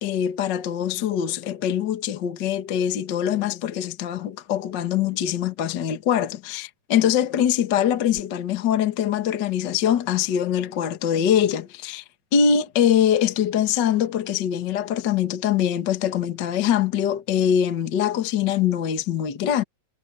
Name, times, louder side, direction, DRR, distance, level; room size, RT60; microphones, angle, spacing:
voice 1, 0.0-12.0 12.3-19.6, left 9 dB, 50° left, 1.3 m, -23 dB
omnidirectional pair, 4.0 m